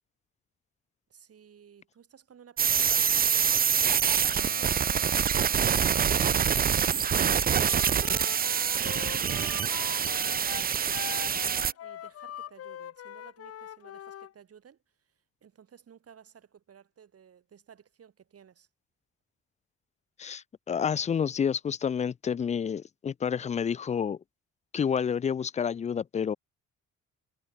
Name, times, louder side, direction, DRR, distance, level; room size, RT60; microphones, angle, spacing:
voice 1, 1.1-6.4 7.2-9.6 10.1-15.1 15.4-18.7, right 8 dB, 50° right, 3.4 m, -55 dB
sound 1, 2.6-11.7, right 8 dB, 30° right, 0.5 m, -25 dB
Wind instrument woodwind instrument, 7.6-14.3, left 11 dB, 50° left, 0.7 m, -42 dB
voice 2, 20.2-24.2 24.7-26.3, left 7 dB, 25° left, 0.3 m, -29 dB
cardioid pair, 90°, 30 cm